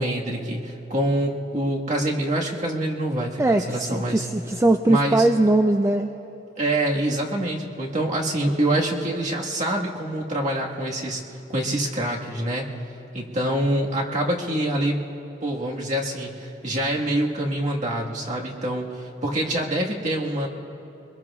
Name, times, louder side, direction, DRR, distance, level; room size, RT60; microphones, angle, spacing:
voice 1, 0.0-4.2 4.9-5.3 6.6-11.2 11.5-12.7 13.1-15.0 15.4-20.5, right 1 dB, 40° right, -2 dB, 1.7 m, -25 dB
voice 2, 3.4-6.1, right 2 dB, 15° right, 6 dB, 0.3 m, -20 dB
24.5 x 21.0 x 2.4 m, 3.0 s
head